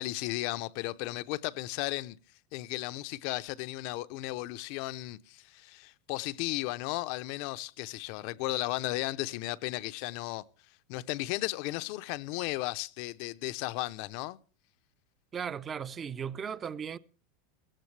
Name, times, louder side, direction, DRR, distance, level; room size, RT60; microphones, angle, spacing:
voice 1, 0.0-2.2 2.5-10.4 10.9-14.4, left 18 dB, 50° left, 0.6 m, -35 dB
voice 2, 15.3-17.0, right 7 dB, 20° right, 0.6 m, -36 dB
17.0 x 16.5 x 3.3 m
supercardioid pair, 160°, 0 cm